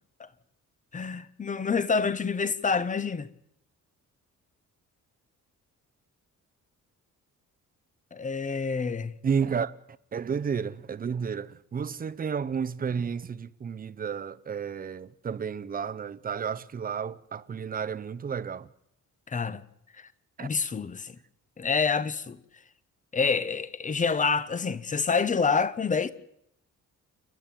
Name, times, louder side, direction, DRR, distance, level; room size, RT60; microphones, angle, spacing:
voice 1, 0.9-3.3 8.1-9.1 19.3-19.6 20.4-21.2 21.6-22.4 23.1-26.1, left 5 dB, 25° left, 0.8 m, -27 dB
voice 2, 9.2-9.7 10.1-18.7 20.4-20.5, right 6 dB, 30° right, 0.7 m, -31 dB
29.0 x 10.5 x 9.2 m
cardioid pair, 160°, 31 cm